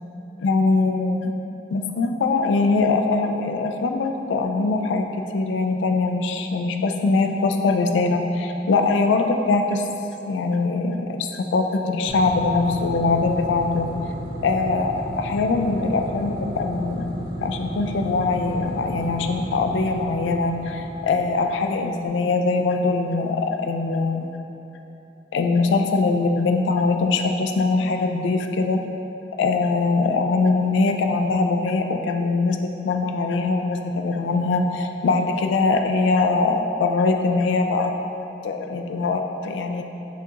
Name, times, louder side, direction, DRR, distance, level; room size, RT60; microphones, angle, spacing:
voice 1, 0.4-1.3 1.7-5.1 5.3-9.8 10.2-14.1 14.4-17.1 17.4-24.3 25.3-28.8 29.4-37.9 38.4-39.8, left 3 dB, 90° left, 5 dB, 0.3 m, -22 dB
sound 1, 12.1-21.9, equal, 20° right, 0.3 m, -33 dB
5.8 x 2.4 x 2.8 m, 3.0 s
head